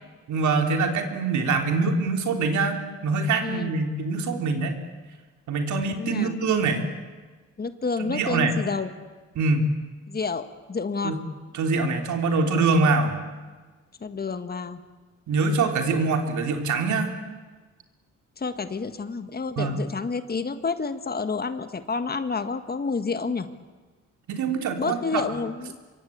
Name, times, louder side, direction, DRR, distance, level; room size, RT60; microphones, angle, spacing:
voice 1, 0.3-4.8 5.5-6.8 8.0-8.6 9.4-9.7 11.0-11.2 11.5-13.2 15.3-17.1 19.6-19.8 24.3-25.3, right 4 dB, 70° right, 4 dB, 3.4 m, -24 dB
voice 2, 3.4-3.7 6.0-6.4 7.6-8.9 10.1-11.2 14.0-14.8 18.4-23.5 24.8-25.8, left 4 dB, 30° left, 10 dB, 1.7 m, -29 dB
25.0 x 23.5 x 8.7 m, 1.3 s
cardioid pair, 90°, 30 cm